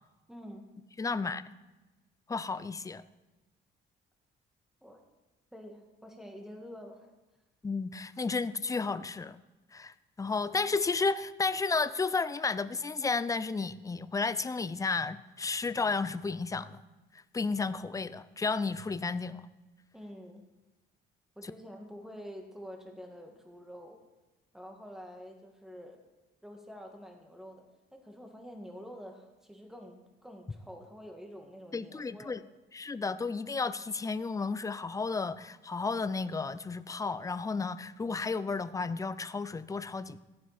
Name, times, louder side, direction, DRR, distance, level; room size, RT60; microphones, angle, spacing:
voice 1, 0.3-0.7 4.8-5.0 5.5-7.1 19.9-20.4 21.4-24.0 24.5-26.0 26.4-27.6 27.9-32.3, equal, ahead, 3 dB, 2.0 m, -47 dB
voice 2, 1.0-1.4 2.3-3.0 7.6-9.4 9.7-16.8 17.1-19.5 31.7-32.4 32.7-40.2, left 4 dB, 15° left, 14 dB, 0.5 m, -32 dB
14.5 x 9.5 x 4.3 m, 1.1 s
cardioid pair, 90°, 20 cm